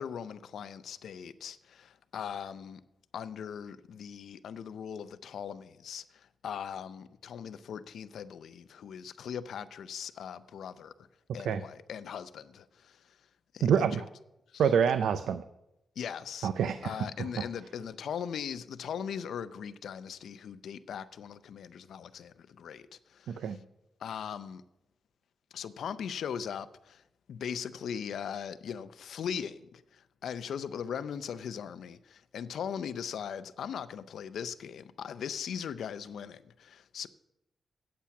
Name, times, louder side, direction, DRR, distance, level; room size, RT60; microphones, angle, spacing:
voice 1, 0.0-2.8 3.1-11.1 11.3-13.2 13.5-14.0 14.5-14.6 16.0-16.5 16.8-23.6 24.0-24.6 25.5-27.0 27.3-37.1, left 8 dB, 80° left, 0.5 m, -39 dB
voice 2, 13.6-14.1 14.6-15.4 16.4-16.9 17.4-17.5 23.3-23.6, right 7 dB, 90° right, 0.4 m, -26 dB
8.6 x 8.4 x 5.9 m
cardioid pair, 115°, 0 cm